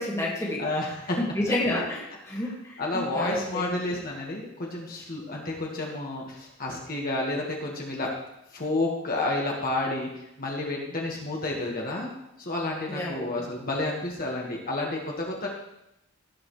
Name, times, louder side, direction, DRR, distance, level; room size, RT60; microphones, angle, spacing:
voice 1, 0.0-0.6 1.2-3.8 12.9-13.3, left 1 dB, 15° left, -4 dB, 2.1 m, -30 dB
voice 2, 0.6-1.2 2.3-2.5 2.8-8.1 8.5-10.1 10.4-12.1 12.4-15.5, left 2 dB, 45° left, -2 dB, 1.8 m, -30 dB
17.0 x 6.9 x 3.3 m, 0.85 s
head